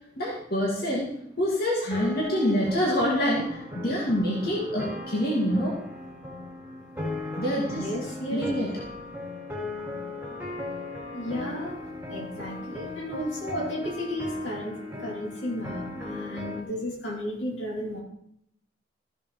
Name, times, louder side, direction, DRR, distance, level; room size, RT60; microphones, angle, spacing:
voice 1, 0.2-1.1 1.4-5.8 7.4-7.9 8.3-8.7, equal, 50° left, -4 dB, 2.1 m, -26 dB
sound 1, 1.8-16.6, left 2 dB, 10° right, 2.1 m, -37 dB
voice 2, 7.7-8.5 9.8-9.9 11.1-11.7 12.1-18.0, equal, 70° left, -2 dB, 2.8 m, -33 dB
14.0 x 7.3 x 3.1 m, 0.75 s
head